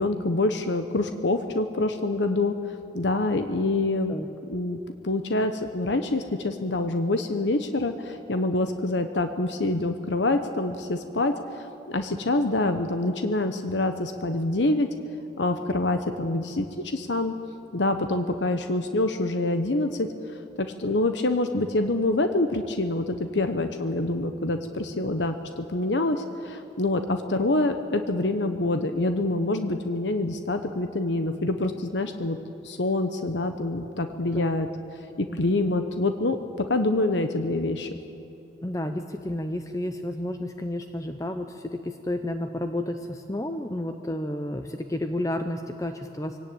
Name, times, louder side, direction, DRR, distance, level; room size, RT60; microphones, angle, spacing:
voice 1, 0.0-2.6 2.9-4.1 4.5-4.8 5.0-14.9 15.4-17.3 17.7-20.1 20.6-32.4 32.6-34.7 35.2-37.9, left 2 dB, 85° left, 7 dB, 1.1 m, -26 dB
voice 2, 38.6-46.4, left 1 dB, 20° left, 7 dB, 0.7 m, -31 dB
23.5 x 17.5 x 8.9 m, 2.8 s
head